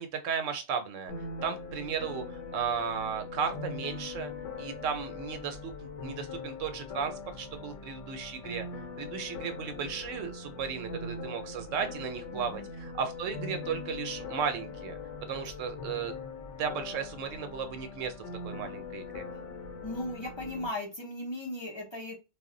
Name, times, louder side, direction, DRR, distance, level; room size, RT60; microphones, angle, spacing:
voice 1, 0.0-8.6 9.0-15.0 15.3-16.1 16.6-18.1 18.4-19.2, right 6 dB, 85° right, 0.9 m, -35 dB
sound 1, 1.1-20.7, left 3 dB, 75° left, 0.9 m, -41 dB
voice 2, 12.3-12.7 19.8-22.1, left 1 dB, 35° left, 0.4 m, -37 dB
2.2 x 2.0 x 3.7 m
omnidirectional pair, 1.3 m